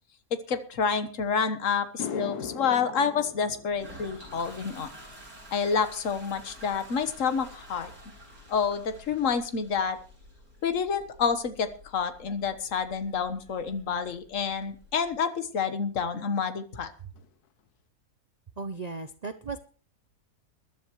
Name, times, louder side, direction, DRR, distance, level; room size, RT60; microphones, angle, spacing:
voice 1, 0.3-4.9 5.5-7.9 8.5-10.0 10.6-11.7 11.9-16.9, left 6 dB, 60° left, 9 dB, 1.6 m, -28 dB
sound 1, 1.3-1.4 1.8-10.3 10.6-11.0 14.6-14.7 16.4-16.5 16.7-16.9 17.1-17.7, left 7 dB, 90° left, 1.4 m, -44 dB
Toilet flush, 3.7-15.1, equal, 70° right, 7.6 m, -50 dB
voice 2, 18.6-19.6, right 4 dB, 45° right, 10 dB, 0.5 m, -36 dB
21.5 x 12.0 x 3.1 m, 0.39 s
omnidirectional pair, 1.6 m